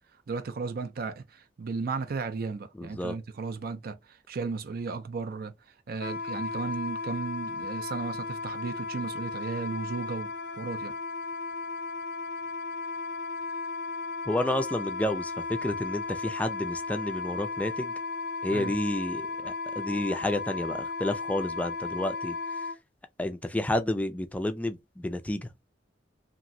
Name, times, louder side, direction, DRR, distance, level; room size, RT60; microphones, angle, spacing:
voice 1, 0.3-5.5 5.9-10.9 18.5-18.8, right 4 dB, 55° right, 0.5 m, -35 dB
voice 2, 2.8-3.1 14.3-15.3 15.6-17.9 18.4-22.4 23.2-25.6, left 1 dB, 10° left, 0.4 m, -30 dB
Wind instrument woodwind instrument, 6.0-22.8, left 3 dB, 65° left, 0.5 m, -35 dB
2.9 x 2.5 x 2.6 m
head